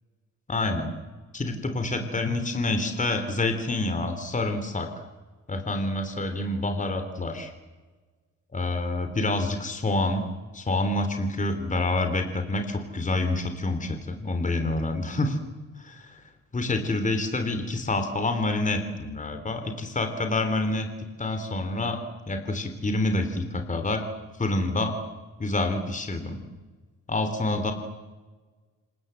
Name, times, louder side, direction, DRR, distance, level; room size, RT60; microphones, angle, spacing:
voice 1, 0.5-0.9 1.3-4.9 5.5-7.5 8.5-10.2 10.5-15.4 15.8-16.2 16.5-20.9 21.2-22.0 22.3-24.0 24.4-25.0 25.4-26.4 27.1-27.7, left 2 dB, 25° left, 6 dB, 3.4 m, -27 dB
27.0 x 24.0 x 8.0 m, 1.3 s
cardioid pair, 115°, 31 cm